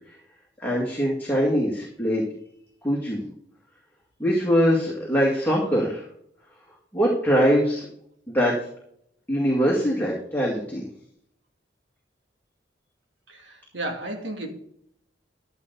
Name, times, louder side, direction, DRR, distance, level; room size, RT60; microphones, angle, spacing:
voice 1, 0.6-2.3 2.8-3.2 4.2-6.1 6.9-7.8 8.3-8.6 9.3-10.8, equal, 10° left, -3 dB, 2.4 m, -22 dB
voice 2, 13.3-14.5, right 1 dB, 85° right, 3 dB, 2.5 m, -33 dB
14.0 x 8.2 x 4.1 m, 0.69 s
head